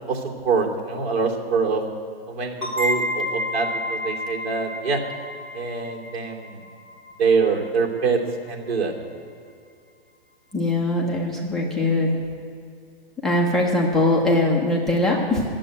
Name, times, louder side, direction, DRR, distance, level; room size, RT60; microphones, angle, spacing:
voice 1, 0.1-1.8 2.3-5.0 5.5-6.6 7.2-8.2 8.5-8.9, right 5 dB, 85° right, -1 dB, 2.9 m, -24 dB
sound 1, 2.6-8.0, left 1 dB, 20° right, 3.8 m, -30 dB
voice 2, 10.5-12.2 13.2-15.4, left 1 dB, ahead, -3 dB, 0.8 m, -21 dB
12.5 x 7.6 x 9.2 m, 2.3 s
hypercardioid pair, 165°, 31 cm